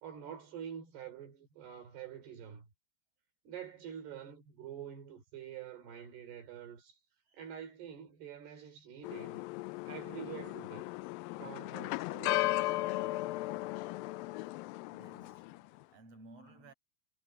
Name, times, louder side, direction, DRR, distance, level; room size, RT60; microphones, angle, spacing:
voice 1, 0.0-2.7 3.5-7.0 7.3-9.4 9.9-10.9 11.4-12.8, right 9 dB, 75° right, 5.7 m, -47 dB
voice 2, 7.3-7.6 11.3-11.5 14.9-16.7, right 2 dB, 40° right, 8.7 m, -57 dB
sound 1, 9.0-15.6, left 18 dB, 90° left, 2.0 m, -36 dB
omnidirectional pair, 4.7 m